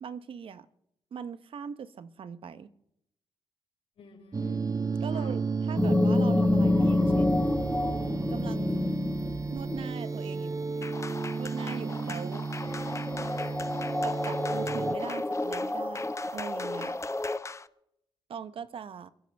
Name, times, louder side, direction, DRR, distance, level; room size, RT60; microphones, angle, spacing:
voice 1, 0.0-0.7 1.1-2.7 5.0-7.5 8.3-8.9 9.5-10.7 11.4-12.5 14.0-17.0 18.3-19.1, right 7 dB, 60° right, 0.9 m, -40 dB
voice 2, 4.0-4.7 5.0-5.4 12.6-13.9, left 4 dB, 75° left, 5.2 m, -51 dB
sound 1, 4.3-15.0, right 4 dB, 35° right, 0.7 m, -32 dB
sound 2, 5.8-10.1 12.1-12.2 12.6-17.4, left 2 dB, 15° left, 1.3 m, -28 dB
sound 3, 10.8-17.7, left 4 dB, 30° left, 0.7 m, -41 dB
28.5 x 10.5 x 3.5 m
supercardioid pair, 55°, 10 cm